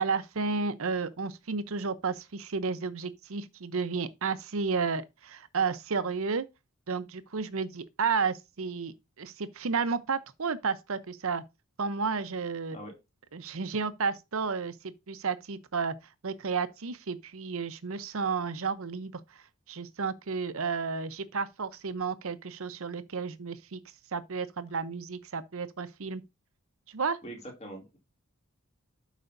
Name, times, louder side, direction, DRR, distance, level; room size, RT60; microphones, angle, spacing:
voice 1, 0.0-6.5 6.9-11.4 11.8-12.8 13.3-15.9 16.2-19.2 19.7-23.8 24.1-26.2 26.9-27.2, right 5 dB, 65° right, 0.7 m, -32 dB
voice 2, 27.2-28.0, right 1 dB, 30° left, 2.6 m, -43 dB
12.0 x 5.0 x 2.6 m
head